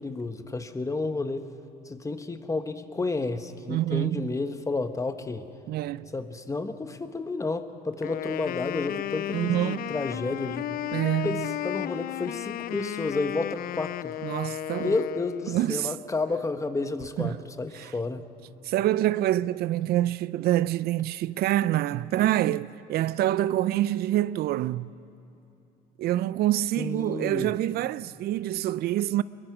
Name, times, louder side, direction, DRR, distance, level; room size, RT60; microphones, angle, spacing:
voice 1, 0.0-1.4 1.8-5.5 6.1-10.8 11.2-14.1 14.8-18.2 26.8-27.5, left 3 dB, 20° left, 1.1 m, -31 dB
voice 2, 3.7-4.2 5.7-6.1 9.3-9.9 10.9-11.5 14.2-15.0 15.5-15.9 17.2-17.3 17.7-17.9 18.6-24.9 26.0-29.2, right 14 dB, 70° right, 0.4 m, -26 dB
Wind instrument woodwind instrument, 8.0-15.6, left 13 dB, 60° left, 0.4 m, -34 dB
23.0 x 22.0 x 6.0 m
cardioid pair, 110°, 17 cm